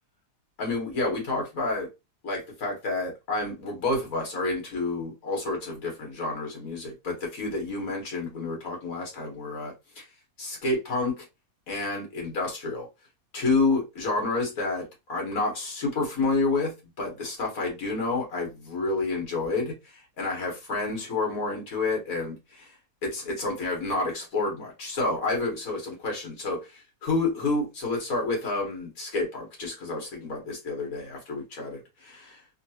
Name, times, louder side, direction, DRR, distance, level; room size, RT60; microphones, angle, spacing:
voice 1, 0.6-1.9 2.2-10.1 10.4-11.3 11.7-12.9 13.3-22.7 23.0-32.4, left 3 dB, 70° left, 1.9 m, -29 dB
3.7 x 2.4 x 2.7 m
omnidirectional pair, 1.5 m